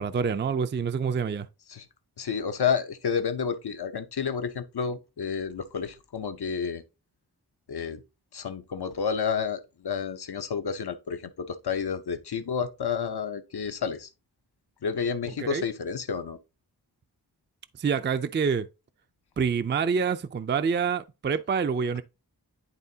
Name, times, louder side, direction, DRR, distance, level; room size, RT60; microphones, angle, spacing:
voice 1, 0.0-1.5 15.4-15.6 17.8-18.7 19.4-22.0, right 6 dB, 30° right, 0.4 m, -27 dB
voice 2, 2.2-6.8 7.7-8.0 8.3-14.1 14.8-16.4, left 6 dB, 80° left, 0.8 m, -30 dB
10.5 x 3.6 x 2.7 m
wide cardioid pair, 75°, 38 cm